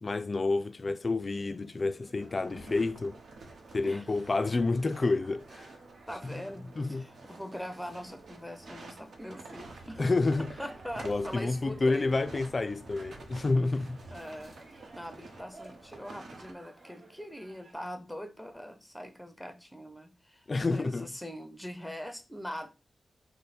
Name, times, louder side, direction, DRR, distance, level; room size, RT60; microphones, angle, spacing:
voice 1, 0.0-3.2 3.7-5.7 6.2-6.4 6.8-7.1 10.0-10.5 11.0-14.0 20.5-21.1, left 3 dB, 35° left, 0.3 m, -29 dB
sound 1, 0.6-17.7, right 2 dB, 45° right, 1.2 m, -57 dB
sound 2, 2.2-16.5, right 3 dB, 75° right, 1.0 m, -49 dB
voice 2, 6.1-10.0 10.6-12.2 14.1-22.7, equal, ahead, 0.6 m, -42 dB
5.5 x 2.1 x 4.1 m
wide cardioid pair, 135°, 0 cm